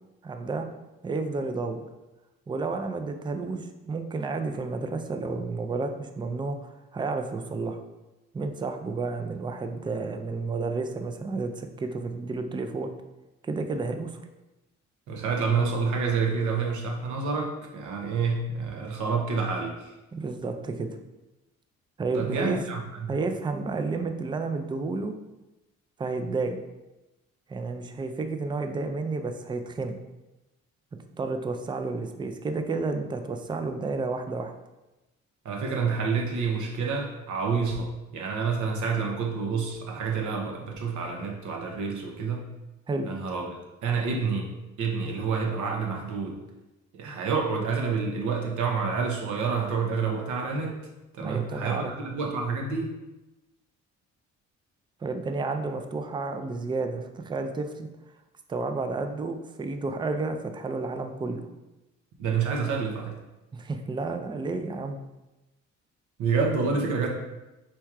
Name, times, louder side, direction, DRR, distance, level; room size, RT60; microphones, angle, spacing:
voice 1, 0.2-0.7 1.0-1.9 2.5-7.8 8.3-12.9 13.4-14.1 20.1-20.9 22.0-22.6 23.1-25.1 26.0-26.6 27.5-30.0 31.2-34.5 42.9-43.1 51.2-51.9 55.0-57.9 58.5-61.4 63.5-65.0, right 3 dB, 15° right, 7 dB, 0.3 m, -31 dB
voice 2, 15.1-19.8 22.1-23.1 35.4-42.4 43.1-43.5 43.8-44.5 44.8-46.4 46.9-50.8 51.1-52.9 62.2-63.1 66.2-67.1, right 5 dB, 75° right, 1 dB, 0.8 m, -28 dB
4.4 x 2.3 x 4.6 m, 1.0 s
cardioid pair, 90°, 30 cm